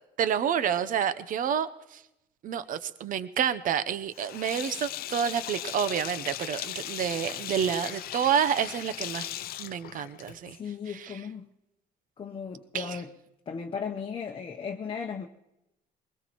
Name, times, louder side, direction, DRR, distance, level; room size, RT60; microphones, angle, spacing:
voice 1, 0.2-1.7 2.4-9.3 9.6-10.6 10.9-11.2 12.7-13.0, right 8 dB, 55° right, 0.8 m, -29 dB
Sink (filling or washing), 4.1-10.5, left 13 dB, 65° left, 0.6 m, -38 dB
voice 2, 10.5-11.5 12.2-13.1 13.5-15.3, left 6 dB, 30° left, 0.9 m, -36 dB
23.5 x 20.0 x 3.1 m
cardioid pair, 110°, 17 cm